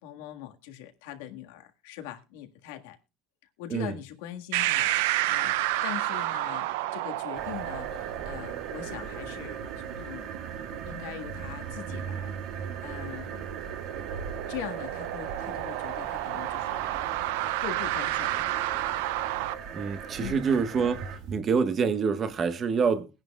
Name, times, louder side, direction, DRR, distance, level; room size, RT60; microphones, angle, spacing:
voice 1, 0.0-3.0 3.6-9.6 10.0-10.3 10.9-13.5 14.5-16.8 17.4-18.5 20.2-20.4, left 11 dB, 90° left, 1.7 m, -42 dB
sound 1, 4.5-19.5, right 15 dB, 90° right, 0.5 m, -32 dB
sound 2, 7.3-21.4, right 6 dB, 55° right, 1.7 m, -39 dB
voice 2, 19.7-23.1, right 5 dB, 35° right, 1.3 m, -26 dB
21.5 x 10.5 x 2.4 m
cardioid pair, 135°, 0 cm